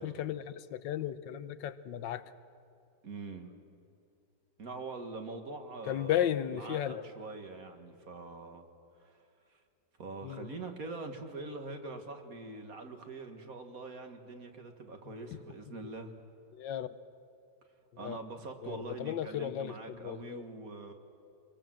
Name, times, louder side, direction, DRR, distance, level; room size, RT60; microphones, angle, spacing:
voice 1, 0.0-2.2 5.9-7.0 10.2-10.5 16.6-16.9 18.0-18.2 18.6-20.4, left 11 dB, 80° left, 1.4 m, -35 dB
voice 2, 3.0-3.5 4.6-6.2 6.5-8.7 9.0-9.2 9.5-9.6 10.0-16.1 18.0-20.9, right 3 dB, 50° right, 2.1 m, -44 dB
25.0 x 21.5 x 7.7 m
omnidirectional pair, 2.0 m